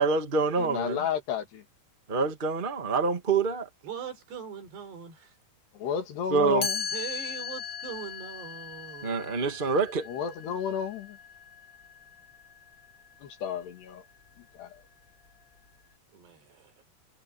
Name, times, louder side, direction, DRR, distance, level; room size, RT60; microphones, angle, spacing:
voice 1, 0.0-1.0 2.1-3.7 6.3-6.7 9.0-10.1, right 4 dB, 55° right, 0.5 m, -26 dB
voice 2, 0.6-1.6 5.7-6.8 10.1-11.2 13.2-14.0 14.4-14.8, left 8 dB, 80° left, 4.6 m, -32 dB
voice 3, 3.8-5.3 6.9-9.3 16.1-16.4, right 7 dB, 80° right, 6.6 m, -41 dB
Chime, 6.6-12.5, left 6 dB, 40° left, 2.0 m, -38 dB
omnidirectional pair, 4.7 m